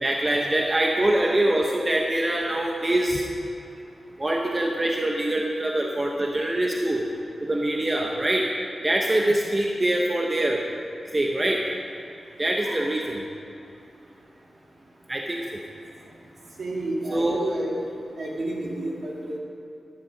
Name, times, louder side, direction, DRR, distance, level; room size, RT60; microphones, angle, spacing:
voice 1, 0.0-3.2 4.2-7.1 7.4-8.5 8.8-10.6 11.1-11.6 12.4-13.2 15.1-15.4 17.1-17.4, right 1 dB, 20° right, 0 dB, 0.8 m, -24 dB
voice 2, 16.6-17.7 18.2-19.4, right 2 dB, 60° right, -3 dB, 2.5 m, -30 dB
11.5 x 10.0 x 5.3 m, 2.7 s
wide cardioid pair, 165°, 0 cm